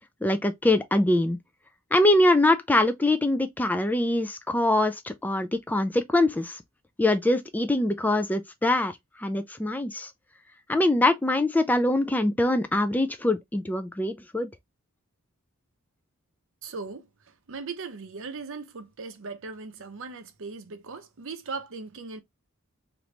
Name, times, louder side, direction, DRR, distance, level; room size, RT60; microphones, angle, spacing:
voice 1, 0.2-1.4 1.9-6.6 7.0-10.1 10.7-14.5, left 1 dB, 10° left, 0.3 m, -23 dB
voice 2, 16.6-22.2, right 4 dB, 60° right, 0.6 m, -38 dB
3.0 x 2.6 x 3.2 m
head